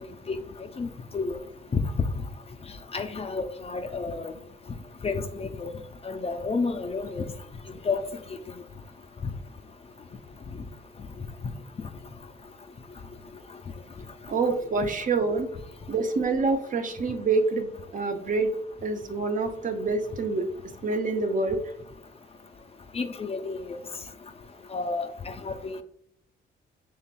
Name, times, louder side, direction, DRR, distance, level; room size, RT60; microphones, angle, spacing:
voice 1, 2.9-4.3 5.0-5.7 6.0-7.2 7.9-8.0 22.9-23.6 24.7-25.1 25.4-25.8, left 4 dB, 30° left, 7 dB, 0.4 m, -30 dB
voice 2, 14.3-15.5 15.9-18.5 18.8-20.5 20.8-21.6, right 3 dB, 40° right, 6 dB, 0.6 m, -26 dB
5.5 x 3.3 x 2.2 m, 0.69 s
cardioid pair, 90°, 20 cm